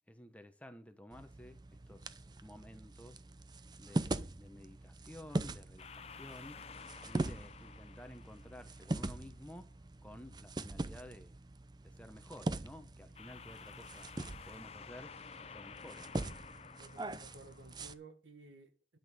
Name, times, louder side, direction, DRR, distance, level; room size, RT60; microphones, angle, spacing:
voice 1, 0.1-1.6 1.9-3.2 3.8-6.6 7.0-9.7 10.0-11.4 11.8-14.1 14.4-15.2 15.5-16.1, left 1 dB, 5° left, 1.1 m, -53 dB
sound 1, 1.1-17.9, right 2 dB, 20° right, 0.5 m, -42 dB
sound 2, 5.8-9.1 13.1-18.0, left 6 dB, 35° left, 0.5 m, -52 dB
voice 2, 16.8-19.0, right 3 dB, 90° right, 1.6 m, -56 dB
10.5 x 5.9 x 7.5 m
head